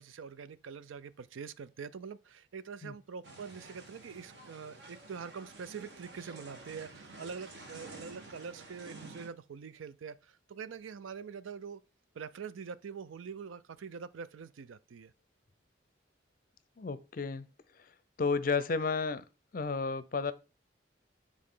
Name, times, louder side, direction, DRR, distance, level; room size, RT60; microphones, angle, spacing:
voice 1, 0.0-11.8 12.1-15.1, right 6 dB, 90° right, 0.4 m, -44 dB
sound 1, 3.2-9.3, right 2 dB, 60° right, 1.5 m, -50 dB
voice 2, 16.8-17.5 18.2-19.2 19.5-20.3, left 4 dB, 45° left, 0.5 m, -32 dB
9.7 x 3.7 x 3.7 m
head